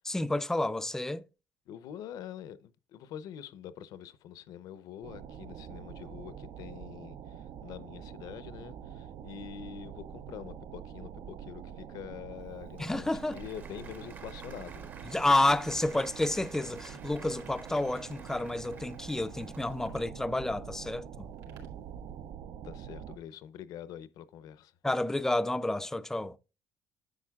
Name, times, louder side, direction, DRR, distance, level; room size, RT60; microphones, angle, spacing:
voice 1, 0.0-1.3 12.8-13.4 15.0-21.3 24.8-26.4, left 2 dB, 5° left, 0.4 m, -30 dB
voice 2, 1.7-7.2 7.6-14.9 22.6-24.7, left 9 dB, 75° left, 0.7 m, -45 dB
sound 1, 5.0-23.2, right 8 dB, 70° right, 0.5 m, -45 dB
Applause, 12.4-20.0, right 4 dB, 30° right, 0.8 m, -53 dB
sound 2, 16.9-22.3, right 4 dB, 90° right, 3.5 m, -59 dB
10.5 x 8.0 x 2.3 m
cardioid pair, 155°, 6 cm